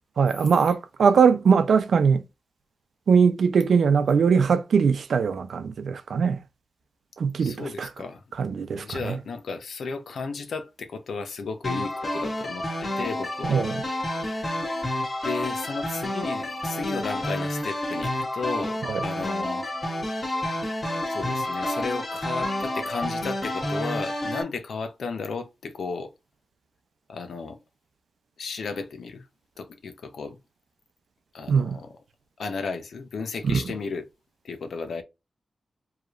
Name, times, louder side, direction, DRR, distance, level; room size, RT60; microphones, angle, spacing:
voice 1, 0.2-2.2 3.1-6.4 7.2-7.9 8.4-9.2 13.5-13.8 18.9-19.0 31.5-31.8 33.5-33.6, right 6 dB, 85° right, 0.6 m, -21 dB
voice 2, 7.4-8.2 8.7-13.6 15.2-19.6 21.0-26.1 27.1-27.6 28.4-29.2 29.6-30.4 31.3-31.9 32.4-34.0 34.4-35.0, left 4 dB, 85° left, 0.9 m, -34 dB
sound 1, 11.6-24.4, left 1 dB, 35° left, 1.6 m, -29 dB
4.9 x 3.0 x 2.5 m
wide cardioid pair, 165°, 0 cm